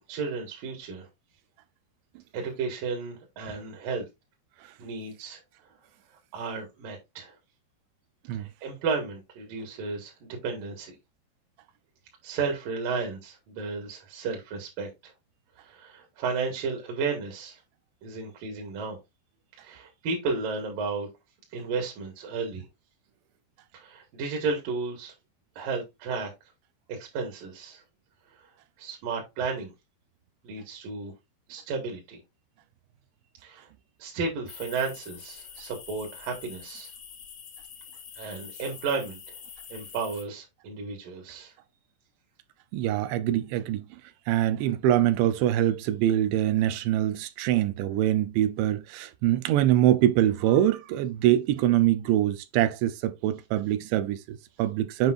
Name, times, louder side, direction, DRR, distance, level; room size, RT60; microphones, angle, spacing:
voice 1, 0.1-1.1 2.3-4.1 4.8-5.4 6.3-7.3 8.4-11.0 12.2-15.1 15.6-17.6 18.0-19.0 19.6-21.1 21.5-22.7 23.7-25.1 25.6-26.3 26.9-27.8 28.8-29.7 30.4-31.1 31.5-32.2 33.4-33.7 34.0-36.9 38.2-39.3 39.7-41.5, right 4 dB, 60° right, 2.9 m, -33 dB
sound 1, 34.5-40.2, left 7 dB, 80° left, 1.4 m, -45 dB
voice 2, 42.7-43.8 44.3-55.1, right 12 dB, 85° right, 3.0 m, -24 dB
7.9 x 5.2 x 2.5 m
omnidirectional pair, 4.9 m